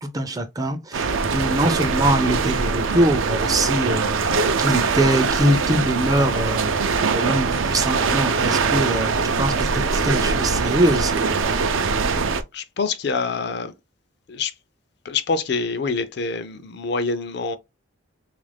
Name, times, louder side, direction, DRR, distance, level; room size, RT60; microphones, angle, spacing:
voice 1, 0.0-11.1, right 1 dB, 20° right, 0.4 m, -23 dB
sound 1, 0.9-12.4, right 4 dB, 75° right, 0.5 m, -22 dB
voice 2, 12.5-13.7 14.3-14.5 15.0-17.6, left 4 dB, 55° left, 0.4 m, -26 dB
3.5 x 2.5 x 3.3 m
head